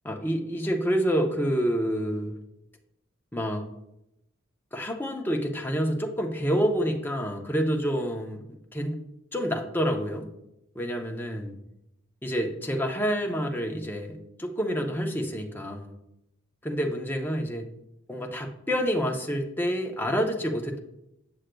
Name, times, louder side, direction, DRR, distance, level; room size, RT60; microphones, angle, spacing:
voice 1, 0.0-2.4 3.3-3.7 4.7-8.4 8.7-9.0 9.3-10.3 10.7-11.5 12.2-15.9 16.6-17.7 18.1-20.8, equal, 10° left, 2 dB, 0.6 m, -28 dB
7.6 x 6.3 x 2.2 m, 0.83 s
head